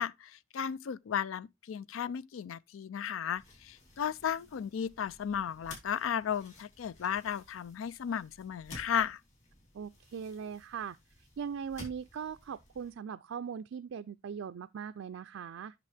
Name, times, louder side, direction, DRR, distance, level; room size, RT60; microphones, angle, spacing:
voice 1, 0.0-9.2, left 8 dB, 90° left, 0.4 m, -35 dB
sound 1, 3.4-12.9, left 2 dB, 40° left, 4.0 m, -54 dB
voice 2, 9.7-15.7, right 7 dB, 80° right, 0.4 m, -40 dB
8.3 x 6.3 x 3.3 m
head